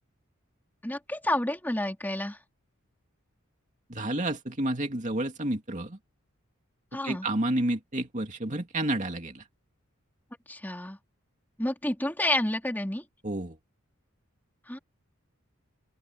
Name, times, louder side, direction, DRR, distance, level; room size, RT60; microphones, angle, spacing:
voice 1, 0.8-2.4 6.9-7.3 10.5-11.0 11.6-13.0 14.7-14.8, left 1 dB, 10° left, 3.1 m, -29 dB
voice 2, 3.9-6.0 7.0-9.4 13.2-13.6, right 1 dB, 35° right, 2.7 m, -30 dB
open air
head